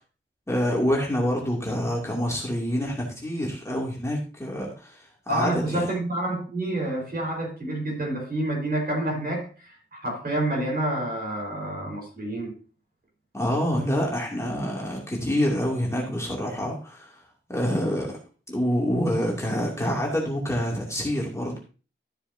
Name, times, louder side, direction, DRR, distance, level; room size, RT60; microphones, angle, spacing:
voice 1, 0.5-5.8 13.3-17.1 17.5-18.2 18.5-21.6, equal, 15° left, -3 dB, 2.5 m, -27 dB
voice 2, 5.3-12.5, right 1 dB, 50° right, 0 dB, 4.5 m, -28 dB
13.0 x 6.9 x 2.7 m, 0.35 s
wide cardioid pair, 130°, 21 cm